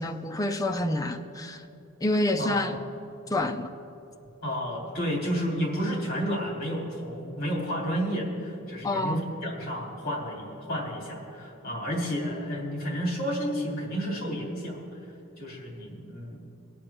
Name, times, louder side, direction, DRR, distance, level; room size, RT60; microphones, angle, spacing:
voice 1, 0.0-1.6 2.0-2.8 3.3-3.7 8.8-9.2, left 1 dB, 15° left, 6 dB, 0.5 m, -27 dB
voice 2, 4.4-14.8 15.4-16.4, equal, 45° left, -3 dB, 2.8 m, -31 dB
21.5 x 8.5 x 3.5 m, 2.8 s
head